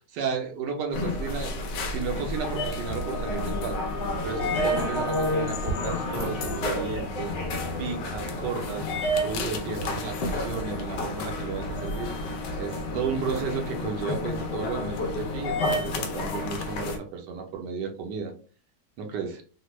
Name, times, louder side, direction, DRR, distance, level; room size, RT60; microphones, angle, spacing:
voice 1, 0.2-1.5 1.8-7.3 7.8-18.3 19.0-19.4, right 5 dB, 80° right, 3 dB, 1.3 m, -33 dB
sound 1, 0.9-17.0, left 1 dB, 85° left, 1.3 m, -30 dB
Wind instrument woodwind instrument, 2.3-6.7, left 2 dB, 40° left, 0.8 m, -40 dB
3.4 x 2.1 x 3.0 m, 0.40 s
omnidirectional pair, 1.8 m